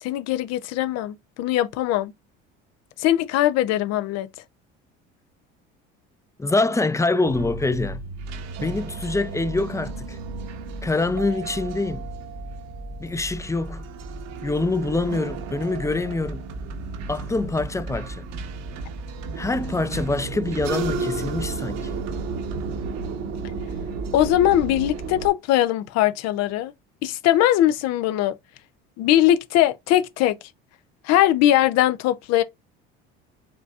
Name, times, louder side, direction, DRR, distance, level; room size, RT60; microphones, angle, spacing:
voice 1, 0.0-2.1 3.0-4.3 24.1-26.7 27.0-28.3 29.0-30.4 31.0-32.4, left 13 dB, 60° left, 0.5 m, -20 dB
voice 2, 6.4-8.0 8.6-10.2 10.8-12.1 13.0-13.9 14.4-16.5 17.1-18.3 19.3-21.9, left 3 dB, 10° left, 0.4 m, -25 dB
sound 1, 7.3-25.3, right 4 dB, 65° right, 1.1 m, -33 dB
sound 2, 11.2-14.5, right 11 dB, 30° right, 0.7 m, -43 dB
5.0 x 3.4 x 2.4 m
supercardioid pair, 80°, 29 cm